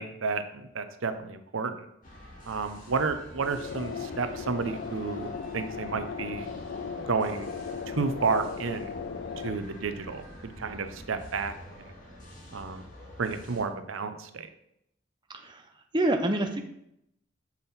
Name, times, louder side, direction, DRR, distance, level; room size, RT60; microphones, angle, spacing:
voice 1, 0.0-1.9 2.5-6.5 7.0-7.5 7.9-8.9 9.4-11.9 12.5-12.8 13.2-14.5, right 4 dB, 90° right, 9 dB, 0.6 m, -31 dB
sound 1, 2.0-13.6, left 1 dB, 40° left, 1.9 m, -47 dB
sound 2, 3.3-9.6, left 6 dB, 60° left, 0.4 m, -37 dB
voice 2, 15.3-15.7 15.9-16.6, right 1 dB, 25° right, 5 dB, 0.6 m, -27 dB
7.3 x 5.7 x 4.1 m, 0.78 s
head